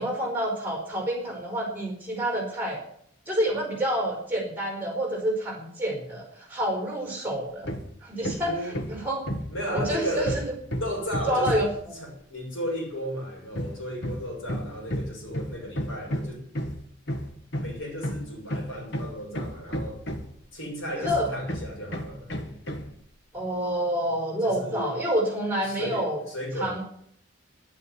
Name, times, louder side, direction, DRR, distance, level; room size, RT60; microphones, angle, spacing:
voice 1, 0.0-2.8 3.3-7.7 8.0-8.6 8.9-9.2 9.7-10.4 11.3-12.0 21.0-21.3 23.3-26.2 26.6-26.8, equal, 10° right, 1 dB, 4.5 m, -28 dB
Hammer, 7.6-7.9 8.2-11.8 13.5-20.5 21.0-22.9, equal, 55° left, 1.5 m, -32 dB
voice 2, 8.4-8.8 9.5-10.4 10.7-11.6 12.0-16.4 17.6-20.0 20.5-22.3 24.4-24.9 25.6-26.8, equal, 80° left, 0 dB, 6.4 m, -34 dB
10.5 x 9.9 x 9.5 m, 0.70 s
head